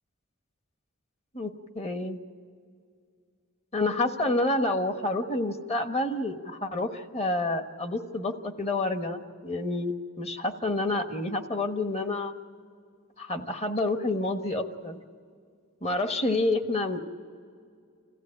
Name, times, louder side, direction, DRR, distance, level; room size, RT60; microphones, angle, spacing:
voice 1, 1.3-2.2 3.7-12.3 13.2-15.0 15.8-17.0, left 2 dB, 30° left, 7 dB, 1.2 m, -29 dB
27.0 x 15.5 x 8.8 m, 2.3 s
head